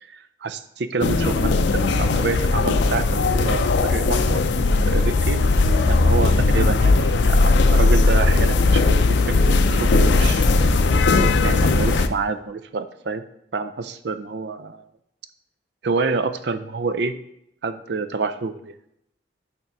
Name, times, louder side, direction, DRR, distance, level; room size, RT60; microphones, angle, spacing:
voice 1, 0.1-5.4 5.9-10.5 11.2-13.2 13.5-14.8 15.8-17.1 17.6-18.5, right 4 dB, 65° right, 11 dB, 0.5 m, -27 dB
sound 1, 1.0-12.1, left 3 dB, 75° left, 0.5 m, -18 dB
6.6 x 3.6 x 5.7 m, 0.77 s
head